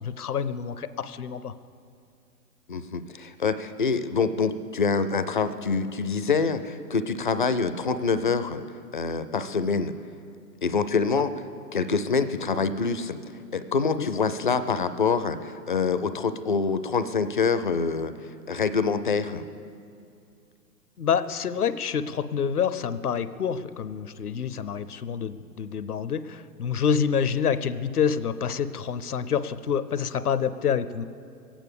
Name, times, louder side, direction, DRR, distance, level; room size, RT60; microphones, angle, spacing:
voice 1, 0.0-1.5 11.1-11.2 14.0-14.1 21.0-31.0, left 7 dB, 65° left, 13 dB, 0.8 m, -27 dB
voice 2, 2.7-8.6 8.9-9.9 10.6-11.3 11.7-13.2 13.5-18.1 18.5-19.5, left 5 dB, 35° left, 11 dB, 0.5 m, -25 dB
22.5 x 9.1 x 6.9 m, 2.4 s
figure-of-eight pair, 120°, 49 cm